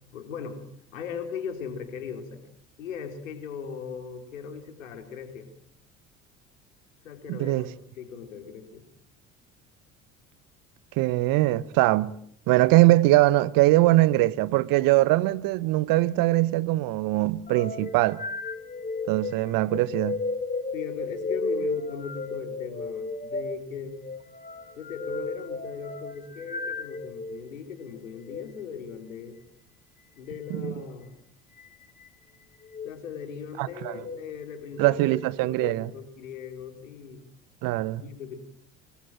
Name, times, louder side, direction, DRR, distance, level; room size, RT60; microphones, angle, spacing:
voice 1, 0.1-0.6 0.9-2.4 2.8-5.5 7.0-7.7 7.9-8.9 19.5-19.6 20.7-24.0 24.8-29.4 30.2-31.1 32.8-35.0 35.4-37.2 38.0-38.4, left 6 dB, 80° left, 3.9 m, -38 dB
voice 2, 7.3-7.7 11.0-12.1 12.5-18.2 19.1-20.2 30.5-30.7 33.6-33.7 34.8-35.9 37.6-38.0, right 18 dB, 55° right, 1.2 m, -22 dB
sound 1, 17.5-27.4 28.2-28.5 30.4-30.8 31.6-32.1 32.6-32.9 33.7-34.2 34.7-35.8, left 3 dB, 20° left, 3.2 m, -34 dB
24.5 x 21.5 x 9.0 m
figure-of-eight pair, 60°, 39 cm